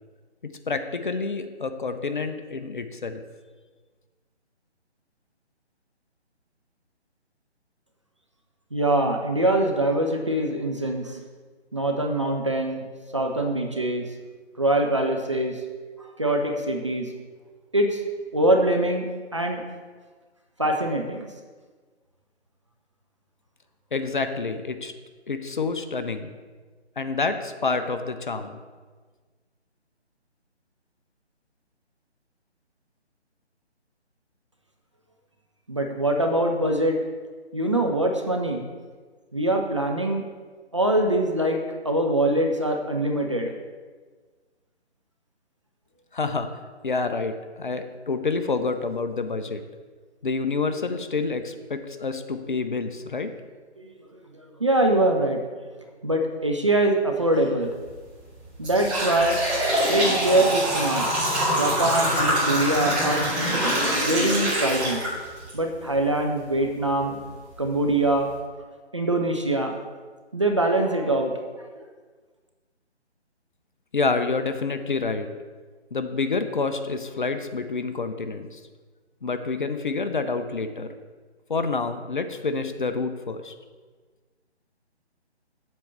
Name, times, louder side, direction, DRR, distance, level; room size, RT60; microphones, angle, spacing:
voice 1, 0.7-3.2 23.9-24.9 25.3-26.3 27.0-28.6 46.1-49.6 50.2-53.3 73.9-75.3 75.9-78.6 79.2-80.9 81.5-83.5, left 4 dB, 45° left, 8 dB, 0.6 m, -28 dB
voice 2, 8.7-11.2 11.7-12.8 13.1-14.0 14.6-15.5 16.2-17.1 17.7-18.0 18.3-19.0 19.3-19.6 20.6-21.3 35.7-37.0 37.5-38.6 39.3-40.2 40.7-43.5 54.6-55.4 56.0-57.7 58.6-59.4 59.9-61.1 61.6-63.2 64.0-65.0 65.5-67.2 67.6-68.3 68.9-69.8 70.3-71.3, right 1 dB, 25° right, 2 dB, 0.5 m, -23 dB
sound 1, 57.7-57.9 58.4-65.5 66.0-66.1 66.9-67.0 67.5-67.6 68.1-68.3, equal, 5° right, 1.5 m, -24 dB
7.6 x 4.4 x 6.9 m, 1.4 s
figure-of-eight pair, 150°, 34 cm